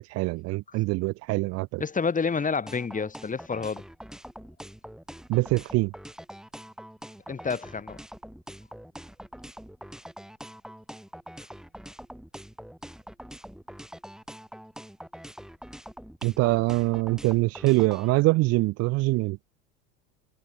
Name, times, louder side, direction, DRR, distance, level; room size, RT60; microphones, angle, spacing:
voice 1, 0.0-1.8 5.3-5.9 16.2-19.4, right 21 dB, 40° right, 0.4 m, -24 dB
voice 2, 1.8-3.8 7.3-8.0, left 5 dB, 20° left, 2.5 m, -29 dB
sound 1, 2.7-18.1, equal, ahead, 3.4 m, -44 dB
hypercardioid pair, 80°, 39 cm